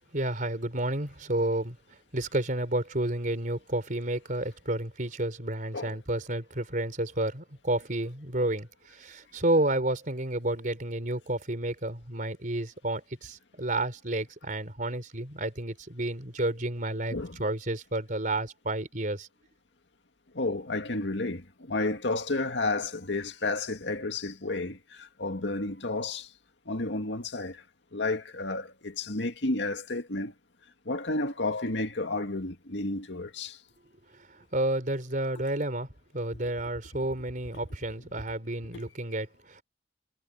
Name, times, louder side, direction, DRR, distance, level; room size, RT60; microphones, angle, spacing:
voice 1, 0.1-1.8 2.1-19.3 34.5-35.9 36.1-39.6, right 1 dB, 50° right, 4.0 m, -31 dB
voice 2, 20.3-26.3 26.7-27.6 27.9-30.3 30.9-33.6, left 2 dB, 90° left, 2.1 m, -31 dB
head